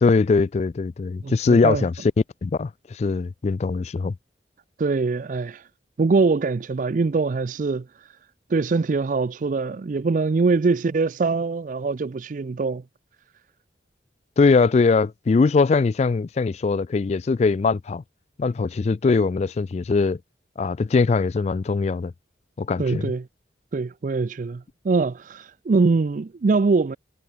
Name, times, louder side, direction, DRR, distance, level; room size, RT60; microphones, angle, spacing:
voice 1, 0.0-1.9 2.4-4.1 14.4-18.0 18.4-20.2 20.6-22.1 22.6-23.1, left 4 dB, 40° left, 0.3 m, -21 dB
voice 2, 1.2-1.8 4.8-5.7 6.0-8.1 8.5-12.8 22.8-23.3 23.7-27.0, right 4 dB, 45° right, 0.4 m, -23 dB
head